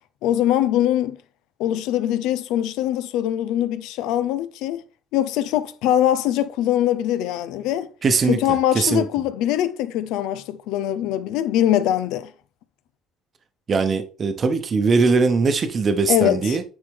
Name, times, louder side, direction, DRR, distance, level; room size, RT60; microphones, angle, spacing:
voice 1, 0.2-1.2 1.6-4.8 5.1-7.9 8.3-12.3 16.1-16.6, left 12 dB, 90° left, 0.6 m, -22 dB
voice 2, 8.0-8.4 8.7-9.0 13.7-16.6, right 4 dB, 35° right, 0.9 m, -20 dB
9.6 x 3.7 x 3.6 m
cardioid pair, 125°, 0 cm